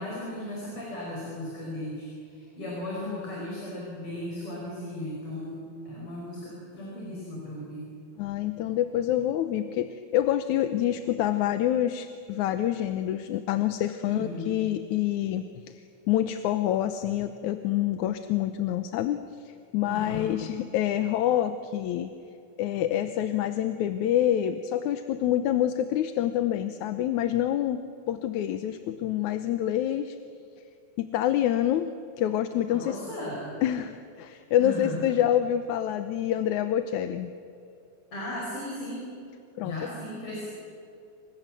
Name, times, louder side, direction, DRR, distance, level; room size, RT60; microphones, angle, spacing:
voice 1, 0.0-7.9 14.0-14.6 19.9-20.4 32.7-33.6 34.6-35.0 38.1-39.1 39.6-40.5, left 1 dB, 45° left, -3 dB, 6.4 m, -36 dB
voice 2, 8.2-15.8 16.1-19.2 19.5-22.1 22.6-27.8 28.1-30.2 31.0-31.9 32.2-33.0 33.6-37.3 39.6-39.7, left 11 dB, 75° left, 9 dB, 2.2 m, -27 dB
28.5 x 26.0 x 7.6 m, 2.5 s
omnidirectional pair, 3.5 m